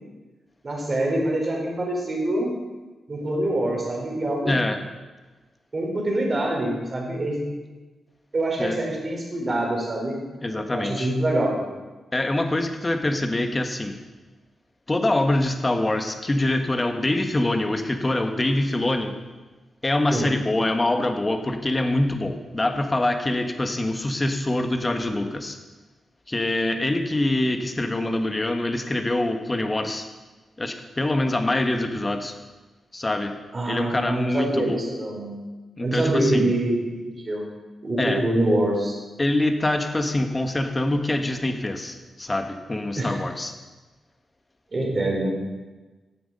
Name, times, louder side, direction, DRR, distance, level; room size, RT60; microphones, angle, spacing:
voice 1, 0.6-2.5 3.1-4.5 5.7-7.4 8.3-10.2 10.7-11.7 20.1-20.3 33.5-35.4 35.8-37.5 37.8-38.9 42.9-43.2 44.7-45.4, right 1 dB, 45° right, -1 dB, 4.3 m, -25 dB
voice 2, 4.4-4.8 8.6-8.8 10.4-11.1 12.1-13.9 14.9-19.1 19.8-25.6 26.3-30.1 30.6-32.3 32.9-33.3 33.6-34.8 35.8-36.5 38.0-38.2 39.2-43.5, left 1 dB, 30° left, 6 dB, 1.5 m, -24 dB
12.0 x 7.8 x 5.5 m, 1.2 s
supercardioid pair, 45°, 0 cm